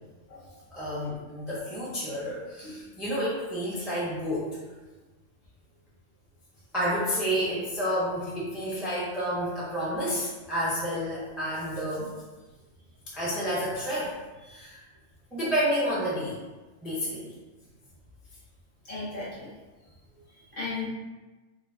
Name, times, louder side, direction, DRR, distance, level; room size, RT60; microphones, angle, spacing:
voice 1, 0.7-4.5 6.7-12.1 13.1-14.1 14.5-14.8 15.3-16.4 16.8-17.3, equal, ahead, -8 dB, 0.4 m, -30 dB
voice 2, 18.8-19.5 20.5-20.9, left 3 dB, 40° left, -8 dB, 0.8 m, -36 dB
2.3 x 2.3 x 3.5 m, 1.2 s
omnidirectional pair, 1.3 m